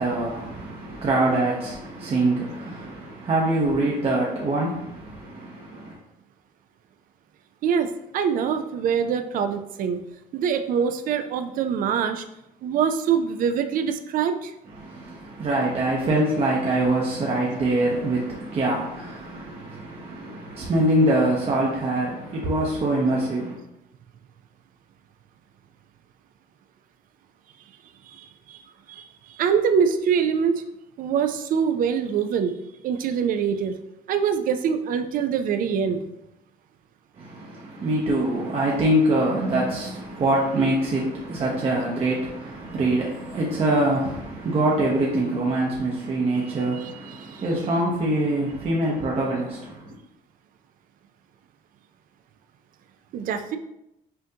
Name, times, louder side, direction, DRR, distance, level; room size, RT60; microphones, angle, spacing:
voice 1, 0.0-6.0 14.7-23.6 37.2-49.9, right 1 dB, 35° right, -3 dB, 0.8 m, -24 dB
voice 2, 7.6-10.0 10.3-12.2 12.6-14.5 28.1-28.6 28.9-30.6 31.0-32.5 32.8-33.8 34.1-36.0 46.7-47.4 53.1-53.6, right 7 dB, 55° right, 7 dB, 0.4 m, -24 dB
5.6 x 2.6 x 2.8 m, 0.84 s
cardioid pair, 110°, 17 cm